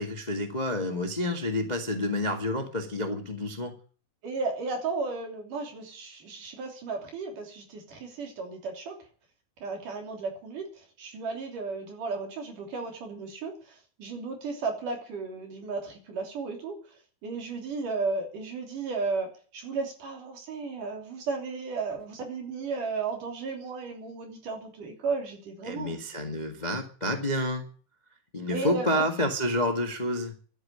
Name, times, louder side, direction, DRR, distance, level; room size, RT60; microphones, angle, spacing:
voice 1, 0.0-3.7 25.6-27.6 28.3-30.3, left 1 dB, 80° left, 5 dB, 0.4 m, -29 dB
voice 2, 4.2-9.0 9.6-10.7 11.0-16.8 17.2-26.0 28.5-29.0, right 4 dB, 55° right, 4 dB, 4.5 m, -34 dB
12.0 x 9.6 x 10.0 m, 0.41 s
omnidirectional pair, 4.5 m